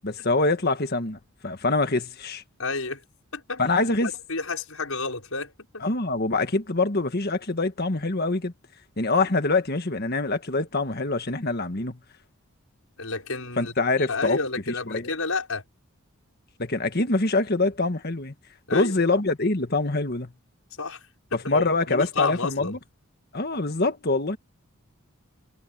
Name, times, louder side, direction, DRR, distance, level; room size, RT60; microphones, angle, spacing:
voice 1, 0.0-2.4 3.6-4.1 5.8-8.5 9.0-12.0 13.6-14.4 14.7-15.1 16.6-18.3 18.7-20.3 21.5-22.8 23.3-24.4, left 3 dB, 45° left, 1.6 m, -25 dB
voice 2, 2.6-3.0 3.3-3.6 4.3-5.8 13.0-13.7 14.0-15.6 18.7-19.2 20.8-21.1 21.3-22.8, left 3 dB, 80° left, 5.7 m, -30 dB
head